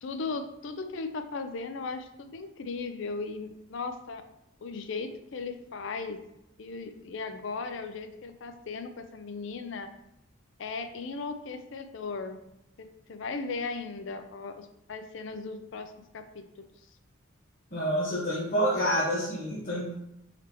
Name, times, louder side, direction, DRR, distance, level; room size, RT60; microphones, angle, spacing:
voice 1, 0.0-4.2 4.6-6.2 6.6-9.9 10.6-12.4 12.8-16.5, left 4 dB, 65° left, 8 dB, 0.4 m, -37 dB
voice 2, 17.7-19.9, equal, 40° left, -8 dB, 1.0 m, -28 dB
4.3 x 4.1 x 2.9 m, 0.82 s
head